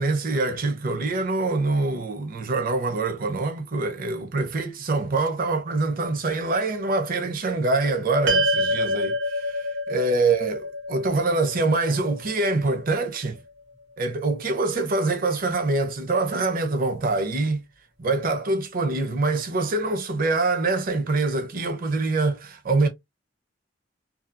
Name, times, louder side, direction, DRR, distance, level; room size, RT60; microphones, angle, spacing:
voice 1, 0.0-13.4 14.0-17.6 18.0-22.9, right 3 dB, 50° right, 0.6 m, -25 dB
sound 1, 8.3-12.7, equal, 85° right, 1.1 m, -27 dB
2.7 x 2.3 x 2.4 m
head